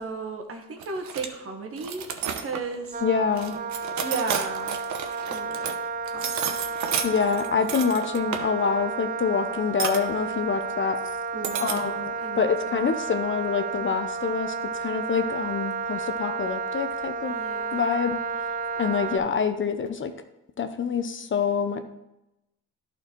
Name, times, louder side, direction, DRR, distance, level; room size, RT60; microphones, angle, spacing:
voice 1, 0.0-2.1 2.4-3.0 4.0-4.8 5.2-5.8 6.0-6.9 11.3-12.9 17.3-17.9, right 4 dB, 50° right, 4 dB, 1.5 m, -35 dB
sound 1, 0.8-1.3 1.8-2.8 3.4-5.7 6.1-8.4 9.8-10.0 11.4-11.9, right 7 dB, 70° right, 1.0 m, -31 dB
Wind instrument woodwind instrument, 2.9-19.2, right 4 dB, 30° right, 0.6 m, -32 dB
voice 2, 3.0-3.5 7.0-11.0 11.6-14.5 14.8-17.4 17.7-18.2 18.8-20.1 20.6-21.8, left 6 dB, 40° left, 8 dB, 0.7 m, -26 dB
11.5 x 4.5 x 4.5 m, 0.92 s
cardioid pair, 90°, 30 cm